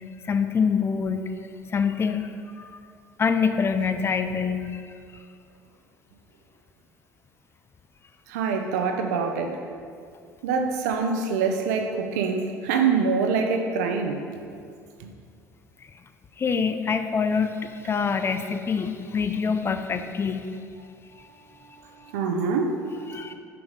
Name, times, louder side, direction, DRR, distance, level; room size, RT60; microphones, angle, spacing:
voice 1, 0.2-1.3 1.7-2.3 2.6-2.7 3.2-4.8 16.4-20.4 23.1-23.3, left 6 dB, 25° left, 8 dB, 0.4 m, -25 dB
voice 2, 8.3-9.6 10.4-14.2 15.0-15.1 22.1-23.3, right 5 dB, 65° right, 4 dB, 0.7 m, -25 dB
5.9 x 5.0 x 5.2 m, 2.3 s
figure-of-eight pair, 60°, 9 cm